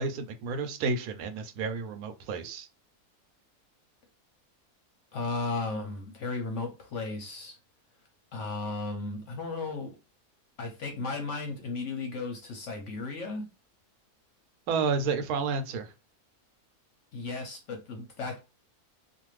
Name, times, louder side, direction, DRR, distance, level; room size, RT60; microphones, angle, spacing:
voice 1, 0.0-2.7 14.7-15.9, right 4 dB, 75° right, 1.0 m, -31 dB
voice 2, 5.1-7.6 8.3-9.9 10.6-13.5 17.1-18.4, left 3 dB, 65° left, 0.9 m, -35 dB
2.5 x 2.5 x 3.1 m
omnidirectional pair, 1.6 m